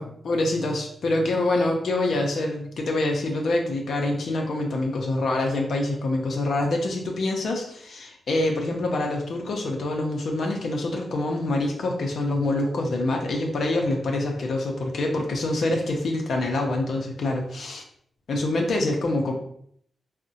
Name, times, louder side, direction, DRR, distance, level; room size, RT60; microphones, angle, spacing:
voice 1, 0.2-17.8 18.3-19.3, left 2 dB, 70° left, 1 dB, 0.5 m, -25 dB
3.6 x 2.1 x 2.6 m, 0.66 s
cardioid pair, 95°, 0 cm